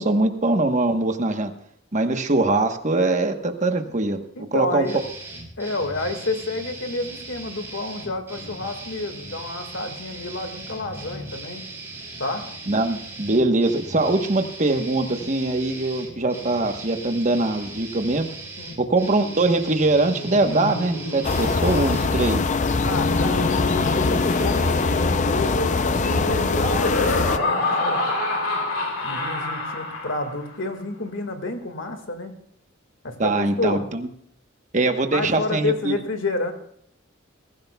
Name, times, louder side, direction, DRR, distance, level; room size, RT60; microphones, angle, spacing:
voice 1, 0.0-1.5 1.9-4.2 4.5-4.9 12.7-18.3 18.8-22.4 33.2-34.1 34.7-36.0, right 2 dB, 35° right, 6 dB, 1.1 m, -22 dB
voice 2, 4.4-5.0 5.6-11.6 12.2-12.5 18.6-18.8 22.8-23.6 23.9-28.0 29.0-32.3 33.0-33.9 35.1-36.5, left 2 dB, 65° left, 6 dB, 1.9 m, -29 dB
sound 1, 4.8-22.0, right 2 dB, 10° right, 4.1 m, -39 dB
Laughter, 20.0-30.5, left 2 dB, 85° left, 3.2 m, -28 dB
sound 2, 21.2-27.4, left 4 dB, 35° left, 0.5 m, -22 dB
22.0 x 15.0 x 2.3 m, 0.70 s
head